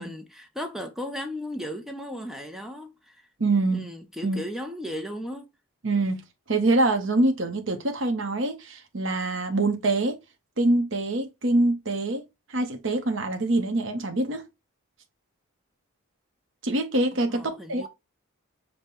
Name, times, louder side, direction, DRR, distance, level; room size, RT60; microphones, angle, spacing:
voice 1, 0.0-3.2 3.7-5.5 17.3-17.9, equal, ahead, 0.5 m, -36 dB
voice 2, 3.4-3.8 4.2-4.4 5.8-6.2 6.5-10.2 10.6-12.2 12.5-14.4 16.6-17.9, right 2 dB, 55° right, 0.8 m, -25 dB
5.4 x 2.2 x 4.2 m
head